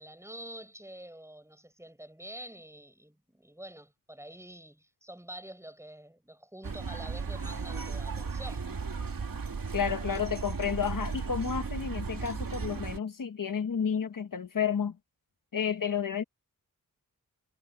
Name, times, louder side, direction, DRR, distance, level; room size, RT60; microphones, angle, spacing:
voice 1, 0.0-8.7, right 1 dB, 10° right, 6.7 m, -47 dB
sound 1, 6.6-13.0, right 5 dB, 75° right, 2.2 m, -35 dB
voice 2, 9.7-15.0 15.5-16.2, left 7 dB, 70° left, 1.1 m, -31 dB
wide cardioid pair, 90°, 34 cm